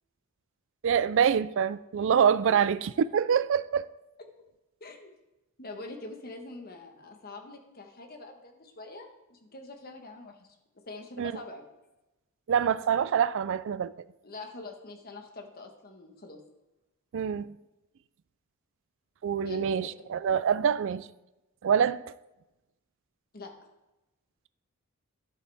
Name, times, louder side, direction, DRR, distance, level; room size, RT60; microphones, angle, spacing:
voice 1, 0.8-3.9 11.2-11.3 12.5-13.9 17.1-17.5 19.2-21.1 21.6-22.0, right 7 dB, 60° right, 0.3 m, -25 dB
voice 2, 4.8-5.1 5.6-10.5 10.9-11.7 14.2-16.4 19.4-19.9 23.3-23.5, left 2 dB, 45° left, 1.3 m, -44 dB
11.0 x 9.2 x 3.5 m
head